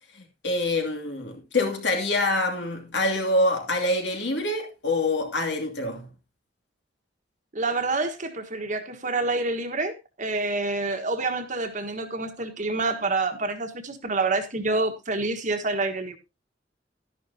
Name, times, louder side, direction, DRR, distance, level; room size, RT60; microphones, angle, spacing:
voice 1, 0.1-6.1, left 2 dB, 70° left, 2.6 m, -26 dB
voice 2, 7.5-16.2, right 3 dB, 45° right, 1.5 m, -27 dB
11.5 x 11.0 x 2.8 m
head